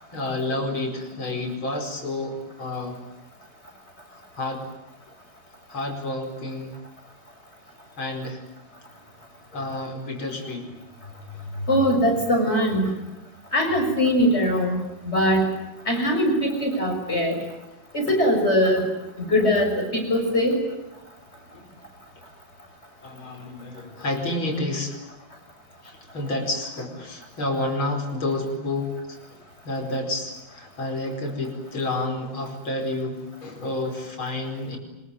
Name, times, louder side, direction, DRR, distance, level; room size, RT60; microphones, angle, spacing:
voice 1, 0.1-3.0 4.1-4.7 5.7-6.8 8.0-8.4 9.5-10.8 18.1-18.3 21.5-21.7 23.0-25.0 25.8-29.2 29.7-34.8, left 2 dB, 80° left, 4 dB, 5.8 m, -30 dB
voice 2, 11.7-12.9 13.5-14.8 15.0-15.5 15.9-17.4 17.9-18.9 19.2-20.6, equal, 30° left, 3 dB, 6.9 m, -21 dB
25.5 x 22.0 x 9.2 m, 0.96 s
omnidirectional pair, 2.2 m